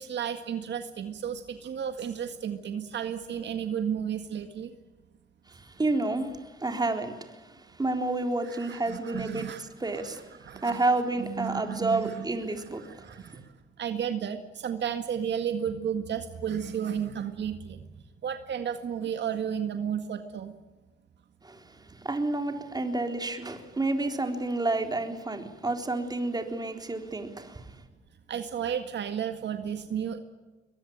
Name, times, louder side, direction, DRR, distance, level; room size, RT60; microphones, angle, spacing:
voice 1, 0.0-4.7 8.5-9.7 10.0-10.9 11.2-18.0 18.2-20.5 28.3-30.2, right 8 dB, 60° right, 1.9 m, -33 dB
voice 2, 5.5-9.5 9.8-10.3 10.6-13.2 21.4-27.7, right 2 dB, 20° right, 3.8 m, -30 dB
22.5 x 22.0 x 8.8 m
cardioid pair, 90°, 20 cm